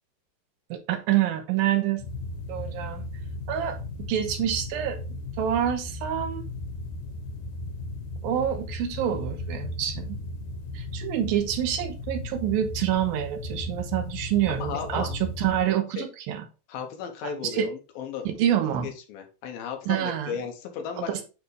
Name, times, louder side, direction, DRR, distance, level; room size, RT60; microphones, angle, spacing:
voice 1, 0.7-2.0 2.5-3.0 3.5-3.8 4.1-6.4 8.2-10.2 10.7-16.4 17.5-17.7 18.3-18.9 19.9-20.3 21.0-21.2, right 11 dB, 90° right, 7 dB, 2.7 m, -27 dB
sound 1, 2.0-15.7, left 2 dB, 65° left, 2.3 m, -36 dB
voice 2, 14.6-15.2 16.0-16.1 16.7-18.3 18.8-21.2, left 7 dB, 85° left, 4 dB, 2.9 m, -35 dB
9.3 x 3.5 x 3.3 m, 0.31 s
omnidirectional pair, 4.1 m